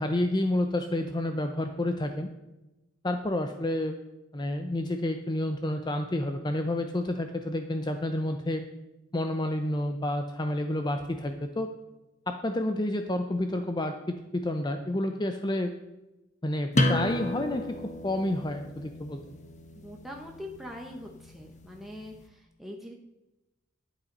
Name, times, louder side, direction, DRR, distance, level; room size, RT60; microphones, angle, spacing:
voice 1, 0.0-2.3 3.0-4.0 4.3-8.6 9.1-11.7 12.3-15.7 16.4-17.8 18.0-19.2, left 1 dB, 20° left, 6 dB, 0.6 m, -29 dB
sound 1, 16.7-22.1, left 1 dB, 35° left, 1.2 m, -33 dB
voice 2, 19.7-22.9, left 1 dB, ahead, -1 dB, 1.0 m, -43 dB
11.0 x 8.0 x 5.4 m, 0.99 s
head